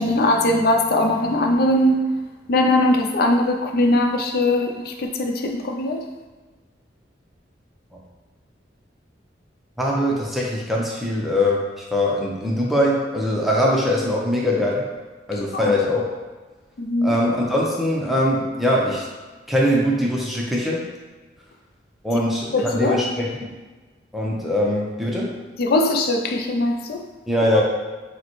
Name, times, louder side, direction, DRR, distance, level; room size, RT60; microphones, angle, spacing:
voice 1, 0.0-2.1 2.5-6.0 15.5-15.7 16.8-17.1 22.5-23.0 25.6-27.0, left 1 dB, 55° left, 3 dB, 0.4 m, -20 dB
voice 2, 9.8-14.9 15.3-16.1 17.0-19.1 19.5-20.9 22.0-23.5 24.1-25.3 27.3-27.6, left 1 dB, ahead, -4 dB, 0.6 m, -22 dB
6.4 x 2.1 x 3.0 m, 1.3 s
head